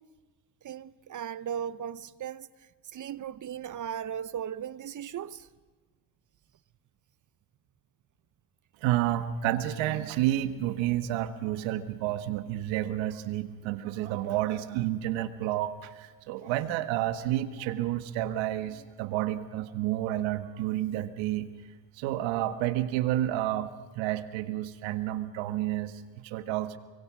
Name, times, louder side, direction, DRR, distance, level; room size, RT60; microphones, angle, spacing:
voice 1, 0.6-2.5 2.9-5.5, right 9 dB, 45° right, 0.8 m, -37 dB
voice 2, 8.8-21.5 22.0-26.8, right 13 dB, 90° right, 1.7 m, -30 dB
29.0 x 23.0 x 6.3 m
cardioid pair, 95°, 44 cm